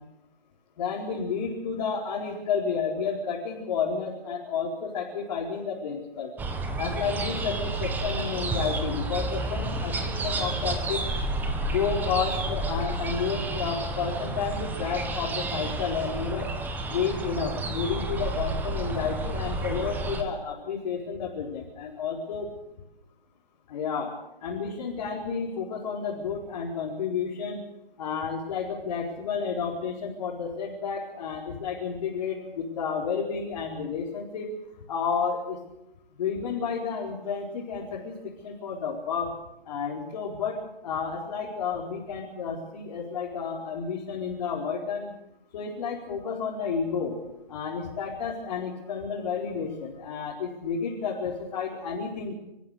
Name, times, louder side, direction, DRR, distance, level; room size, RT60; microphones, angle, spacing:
voice 1, 0.8-6.3 6.8-11.1 11.7-16.5 16.9-22.5 23.7-24.1 24.4-27.6 28.0-34.5 34.9-35.6 36.2-39.3 39.6-45.1 45.5-47.2 47.5-52.3, left 6 dB, 35° left, -3 dB, 4.6 m, -31 dB
sound 1, 6.4-20.2, right 2 dB, 5° right, 1.4 m, -31 dB
30.0 x 15.0 x 7.9 m, 0.92 s
hypercardioid pair, 150°, 31 cm